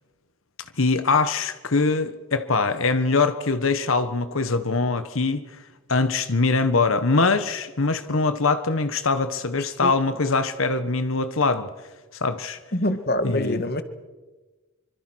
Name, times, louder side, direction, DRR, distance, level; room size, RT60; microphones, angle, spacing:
voice 1, 0.8-5.4 5.9-11.7 12.2-12.6 13.2-13.6, left 3 dB, 75° left, 10 dB, 1.2 m, -23 dB
voice 2, 12.7-13.8, left 1 dB, 45° left, 10 dB, 1.9 m, -24 dB
26.0 x 25.5 x 6.3 m, 1.2 s
head